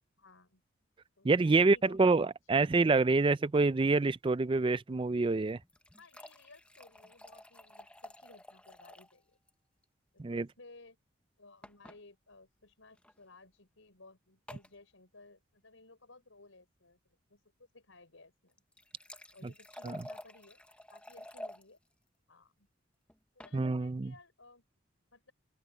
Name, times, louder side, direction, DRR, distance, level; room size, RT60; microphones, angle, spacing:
voice 1, 0.2-0.6 1.2-2.8 6.0-9.4 10.1-11.0 11.4-17.0 17.3-18.6 19.3-20.6 20.9-21.8 22.3-22.7 23.3-24.6 25.1-25.3, left 3 dB, 90° left, 5.1 m, -58 dB
voice 2, 1.2-5.6 10.2-10.5 19.8-20.0 23.5-24.1, right 3 dB, 25° right, 0.4 m, -27 dB
sound 1, 5.5-9.2 9.5-9.6 9.8-9.9 11.6-12.0 13.0-13.1 14.5-14.8 18.5-21.6 23.1-23.6, left 1 dB, 5° left, 0.8 m, -50 dB
open air
head